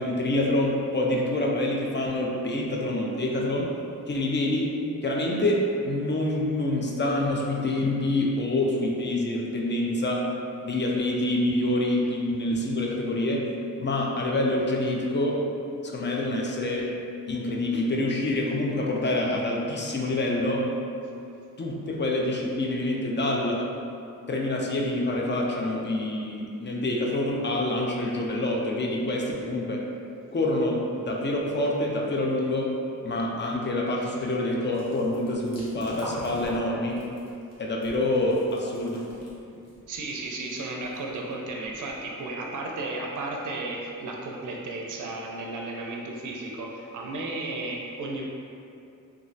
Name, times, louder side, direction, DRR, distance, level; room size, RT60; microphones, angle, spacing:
voice 1, 0.0-3.7 4.1-4.7 5.0-10.3 10.6-13.5 13.8-15.4 15.8-16.9 17.3-20.7 21.6-23.7 24.3-29.8 30.3-32.7 33.0-37.0 37.6-39.1, left 1 dB, 35° left, -1 dB, 0.4 m, -26 dB
sound 1, 34.7-42.4, left 1 dB, 50° left, 0.9 m, -43 dB
voice 2, 39.9-48.2, right 2 dB, 65° right, -1 dB, 0.5 m, -34 dB
2.9 x 2.3 x 2.6 m, 2.6 s
wide cardioid pair, 75°, 34 cm